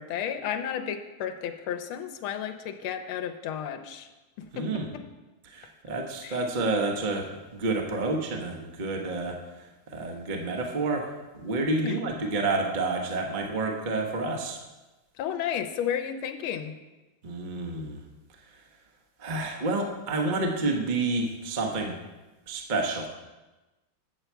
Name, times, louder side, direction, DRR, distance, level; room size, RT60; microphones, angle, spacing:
voice 1, 0.0-4.1 4.4-5.0 6.2-6.4 11.8-12.0 15.2-16.7, left 9 dB, 85° left, 7 dB, 1.5 m, -33 dB
voice 2, 4.5-4.9 5.5-9.4 9.9-14.6 17.2-18.0 19.2-22.0 22.5-23.1, right 2 dB, 45° right, 2 dB, 0.6 m, -29 dB
8.7 x 7.0 x 4.5 m, 1.1 s
omnidirectional pair, 2.3 m